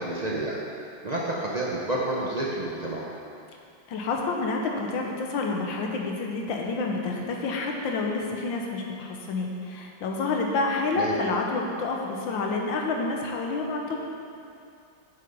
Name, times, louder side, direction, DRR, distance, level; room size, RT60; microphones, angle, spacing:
voice 1, 0.0-3.0 10.9-11.1, right 1 dB, 65° right, -4 dB, 0.4 m, -30 dB
voice 2, 3.9-14.0, left 3 dB, 90° left, 1 dB, 1.7 m, -28 dB
8.4 x 5.9 x 5.4 m, 2.5 s
omnidirectional pair, 2.0 m